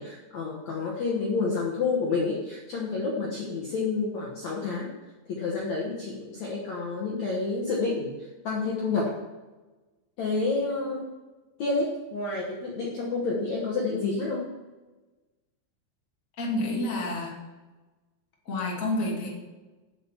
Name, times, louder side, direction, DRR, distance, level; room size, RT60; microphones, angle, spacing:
voice 1, 0.0-4.9 5.3-9.2 10.2-11.1 11.6-14.5, left 3 dB, 80° left, -3 dB, 1.6 m, -29 dB
voice 2, 16.4-17.3 18.4-19.3, left 2 dB, 35° left, -2 dB, 1.3 m, -29 dB
8.9 x 7.2 x 7.3 m, 1.2 s
omnidirectional pair, 5.4 m